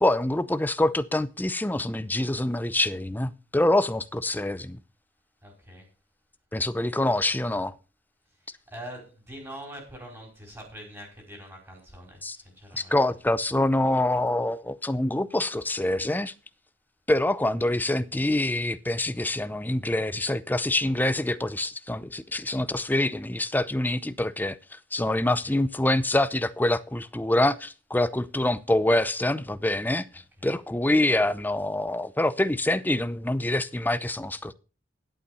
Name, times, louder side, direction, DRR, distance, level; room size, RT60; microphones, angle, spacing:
voice 1, 0.0-4.8 6.5-7.7 12.2-12.4 12.7-16.3 17.1-34.5, left 1 dB, 10° left, 0.6 m, -25 dB
voice 2, 5.4-5.9 8.3-13.0 25.1-25.6 30.4-30.5, equal, 15° right, 4.8 m, -44 dB
11.5 x 8.5 x 5.4 m
head